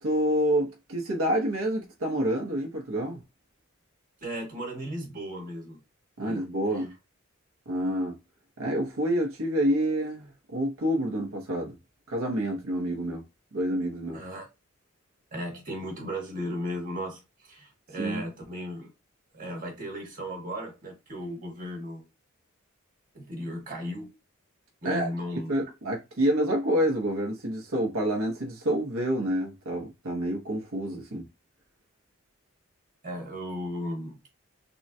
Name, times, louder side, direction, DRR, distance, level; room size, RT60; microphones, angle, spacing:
voice 1, 0.0-3.2 6.2-6.9 7.7-8.2 8.6-11.8 12.1-13.2 13.5-14.2 18.0-18.2 24.8-25.1 25.4-31.3, right 1 dB, 85° right, 0.8 m, -28 dB
voice 2, 4.2-5.8 6.2-6.4 6.7-6.8 14.1-14.5 15.3-18.9 19.3-22.0 23.1-24.1 24.8-25.5 33.0-34.3, equal, 40° right, 1.3 m, -36 dB
3.7 x 2.1 x 2.7 m
head